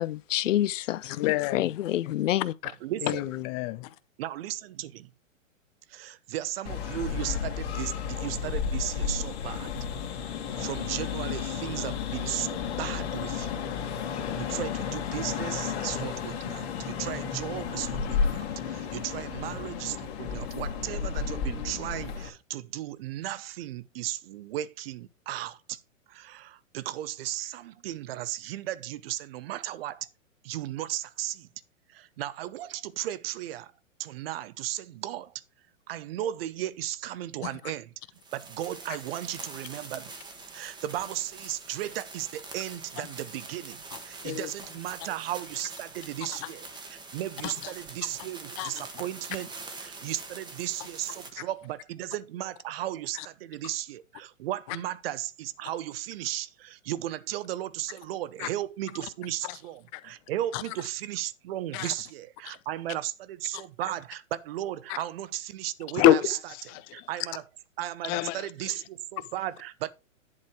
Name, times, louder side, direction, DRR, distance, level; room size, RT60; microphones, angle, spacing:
voice 1, 0.0-2.5, left 13 dB, 70° left, 0.5 m, -28 dB
voice 2, 1.0-1.8 2.1-2.2 2.6-2.7 3.0-3.9 37.4-37.5 43.0-43.1 43.9-44.5 46.2-46.5 47.4-47.7 48.0-48.1 48.6-48.9 51.4-51.5 53.1-53.3 54.7-54.8 58.4-58.5 59.4-59.6 59.9-60.0 60.5-60.6 61.7-61.9 62.4-62.6 63.5-63.6 64.9-65.0 65.9-67.1 68.0-68.8 69.2-69.3, left 13 dB, 30° left, 0.6 m, -29 dB
voice 3, 2.8-3.2 4.2-5.1 5.9-9.7 10.6-13.7 14.4-25.8 26.1-30.1 30.4-31.5 31.9-33.7 34.0-35.3 35.9-37.8 38.3-39.4 39.6-40.1 40.5-49.5 49.8-66.4 66.9-67.4 67.8-69.9, right 13 dB, 45° right, 0.9 m, -35 dB
sound 1, 6.6-22.3, left 7 dB, 50° left, 2.3 m, -32 dB
sound 2, 38.2-51.3, right 3 dB, 10° right, 1.3 m, -44 dB
11.0 x 4.1 x 4.8 m
hypercardioid pair, 125°, 40 cm